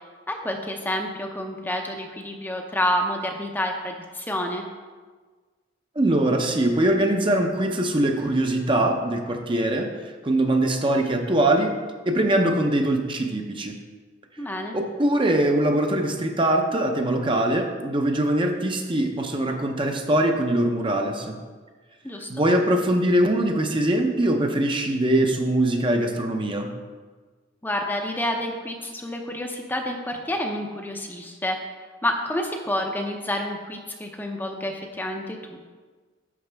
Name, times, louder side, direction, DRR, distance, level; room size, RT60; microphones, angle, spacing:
voice 1, 0.3-4.6 14.4-14.7 22.0-22.3 27.6-31.6 32.0-35.7, left 1 dB, 10° left, 2 dB, 0.6 m, -29 dB
voice 2, 6.0-9.9 10.2-11.7 12.1-13.7 14.7-21.4 22.3-26.7, right 1 dB, 25° right, 3 dB, 0.7 m, -22 dB
11.0 x 6.5 x 3.4 m, 1.4 s
head